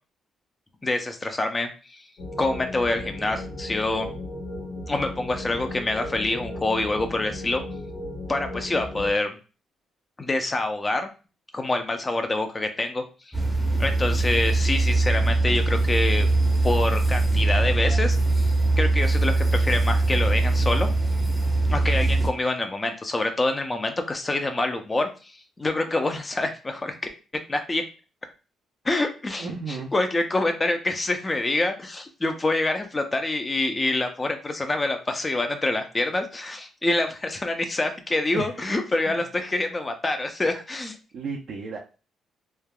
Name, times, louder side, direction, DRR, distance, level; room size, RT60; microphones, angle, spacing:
voice 1, 0.8-2.0 2.4-4.1 4.9-7.6 8.3-9.3 10.2-11.1 11.5-13.3 13.8-16.3 16.6-18.5 18.8-20.9 21.7-27.0 27.5-27.8 28.8-41.0, left 2 dB, 25° left, 6 dB, 0.5 m, -26 dB
sound 1, 2.2-9.1, left 1 dB, 75° left, 1.4 m, -36 dB
sound 2, 13.3-22.3, right 2 dB, 5° right, 0.8 m, -22 dB
voice 2, 29.4-29.9 38.3-38.5 39.1-39.2 41.1-41.8, right 5 dB, 65° right, -2 dB, 0.5 m, -33 dB
3.3 x 2.3 x 2.2 m, 0.34 s
cardioid pair, 90°, 0 cm